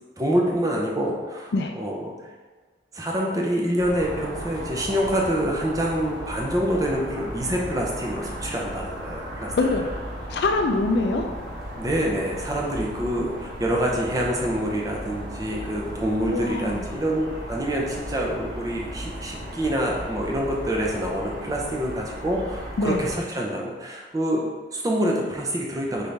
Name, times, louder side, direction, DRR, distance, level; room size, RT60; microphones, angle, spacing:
voice 1, 0.2-1.5 1.8-2.0 2.9-9.5 11.8-26.1, equal, 20° right, -2 dB, 0.6 m, -26 dB
sound 1, 3.8-23.1, equal, 55° right, 1.2 m, -36 dB
voice 2, 9.6-9.9 10.3-11.3 16.2-17.0 22.8-23.0, left 2 dB, 60° left, 4 dB, 0.4 m, -24 dB
4.0 x 3.6 x 3.3 m, 1.4 s
head